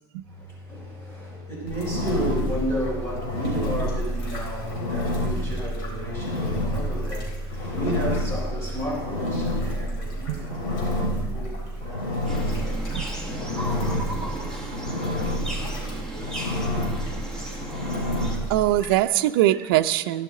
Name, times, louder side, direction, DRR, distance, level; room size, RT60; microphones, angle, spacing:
voice 1, 0.3-10.5 11.0-12.7 13.2-14.9 15.3-16.5, equal, 20° left, -3 dB, 3.8 m, -33 dB
Engine, 1.7-19.0, equal, 70° left, 4.0 m, -29 dB
voice 2, 10.3-10.6 12.9-13.0 18.5-20.2, right 14 dB, 75° right, 8 dB, 0.5 m, -22 dB
sound 1, 12.3-18.4, right 1 dB, 5° left, 1.4 m, -35 dB
15.0 x 11.0 x 3.7 m, 1.1 s
cardioid pair, 170°, 12 cm